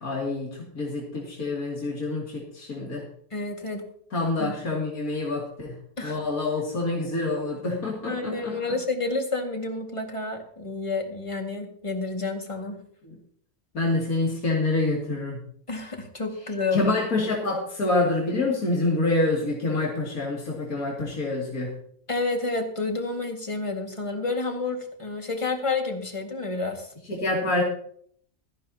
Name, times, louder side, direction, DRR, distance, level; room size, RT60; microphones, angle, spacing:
voice 1, 0.0-3.0 4.1-5.7 6.0-8.6 13.0-13.1 13.7-15.4 16.7-21.7 27.1-27.6, left 2 dB, 80° left, -4 dB, 3.1 m, -27 dB
voice 2, 3.3-3.8 4.4-4.5 6.0-6.2 8.1-12.8 15.7-16.9 22.1-26.9, left 3 dB, 20° left, 2 dB, 2.0 m, -30 dB
16.5 x 14.0 x 2.9 m, 0.62 s
omnidirectional pair, 1.5 m